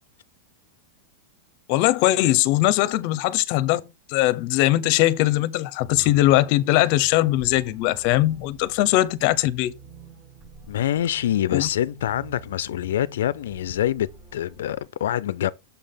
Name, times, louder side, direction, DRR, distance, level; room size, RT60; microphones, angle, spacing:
voice 1, 1.7-3.8 4.1-9.7 11.5-11.7, left 16 dB, 40° left, 0.7 m, -20 dB
sound 1, 5.8-14.8, right 3 dB, 25° right, 1.7 m, -46 dB
voice 2, 10.7-15.5, left 11 dB, 80° left, 0.4 m, -25 dB
7.0 x 3.4 x 5.7 m
supercardioid pair, 165°, 0 cm